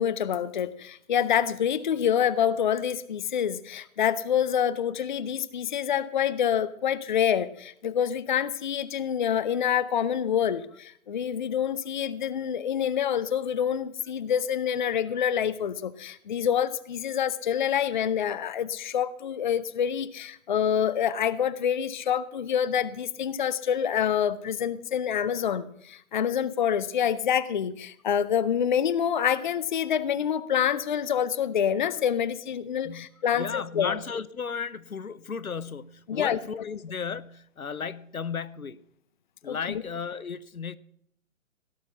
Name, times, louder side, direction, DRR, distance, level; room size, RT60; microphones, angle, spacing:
voice 1, 0.0-34.0 36.1-36.4 39.5-39.8, left 9 dB, 35° left, 0.5 m, -27 dB
voice 2, 33.3-38.8 39.4-40.8, left 6 dB, 85° left, 0.8 m, -34 dB
16.5 x 6.0 x 7.0 m
figure-of-eight pair, 130°, 42 cm